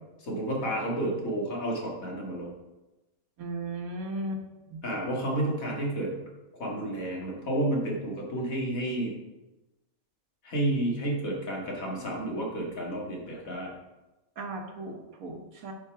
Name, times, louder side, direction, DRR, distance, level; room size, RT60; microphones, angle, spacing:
voice 1, 0.2-2.5 4.8-6.1 6.6-9.1 10.4-13.7, right 1 dB, 65° left, -2 dB, 2.4 m, -31 dB
voice 2, 3.4-4.4 4.7-4.8 14.4-15.7, right 1 dB, 70° right, 4 dB, 1.6 m, -36 dB
9.8 x 5.8 x 4.7 m, 1.1 s
omnidirectional pair, 1.6 m